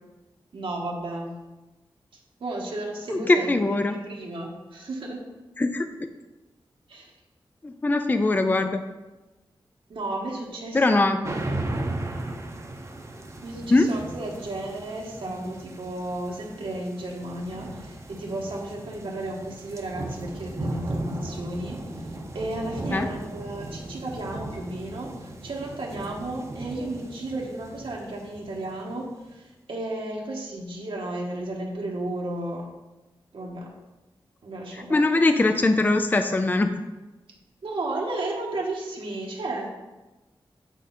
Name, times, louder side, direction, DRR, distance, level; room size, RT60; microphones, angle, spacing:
voice 1, 0.5-1.3 2.4-5.2 6.9-7.1 9.9-11.2 13.4-32.7 33.3-33.7 34.4-35.0 37.6-39.7, right 2 dB, 75° right, -2 dB, 1.4 m, -33 dB
voice 2, 3.1-4.0 5.6-6.1 7.6-8.8 10.7-11.3 13.7-13.9 22.9-23.1 34.7-36.8, left 2 dB, 20° left, 8 dB, 0.4 m, -22 dB
sound 1, 11.2-29.1, right 2 dB, 35° right, 0.8 m, -36 dB
9.1 x 4.9 x 4.2 m, 1.1 s
wide cardioid pair, 140°, 9 cm